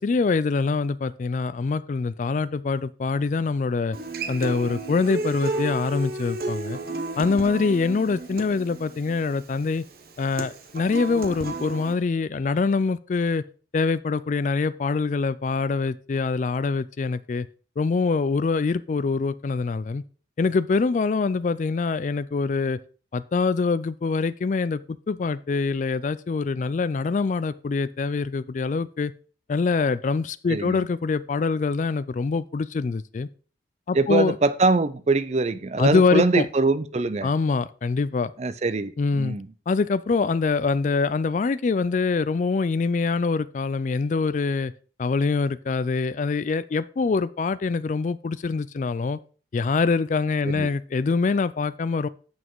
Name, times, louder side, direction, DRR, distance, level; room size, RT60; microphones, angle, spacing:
voice 1, 0.0-4.0 4.3-6.8 7.2-9.8 10.2-13.4 13.7-17.5 17.8-20.0 20.4-22.8 23.1-29.1 29.5-33.3 33.9-34.4 35.8-36.5 37.2-38.3 39.0-39.4 39.7-44.7 45.0-49.2 49.5-52.1, left 4 dB, 40° left, 15 dB, 0.3 m, -24 dB
Human voice / Acoustic guitar, 3.9-11.9, right 2 dB, 55° right, 0.9 m, -32 dB
voice 2, 30.5-30.8 33.9-37.3 38.4-39.5 50.4-50.7, right 3 dB, 35° right, 14 dB, 0.4 m, -23 dB
7.1 x 6.2 x 4.6 m, 0.40 s
head